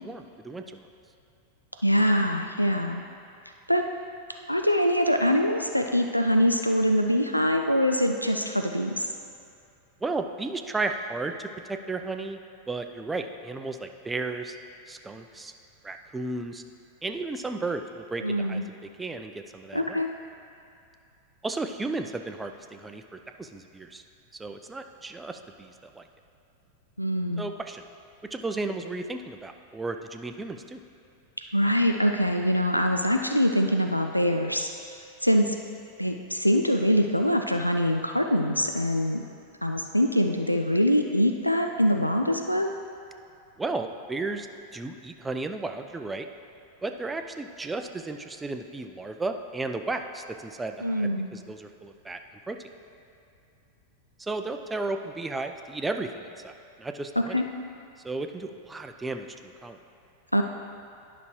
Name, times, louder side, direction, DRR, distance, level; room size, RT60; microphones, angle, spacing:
voice 1, 0.0-0.9 10.0-12.4 12.7-14.6 14.9-15.5 15.8-16.6 17.0-20.0 21.4-24.0 24.4-26.0 27.4-27.8 28.3-30.8 43.6-44.5 44.7-46.3 46.8-52.2 52.5-52.6 54.2-57.4 58.0-59.8, right 3 dB, 10° right, 6 dB, 0.4 m, -34 dB
voice 2, 1.8-3.0 3.7-3.9 4.5-9.1 18.2-18.6 19.7-20.1 27.0-27.5 31.5-34.7 35.2-35.6 36.0-39.2 39.6-42.7 50.8-51.3 57.3-57.4 60.3-60.4, equal, 90° left, 4 dB, 0.3 m, -24 dB
10.5 x 5.8 x 3.1 m, 2.5 s
figure-of-eight pair, 90°, 0 cm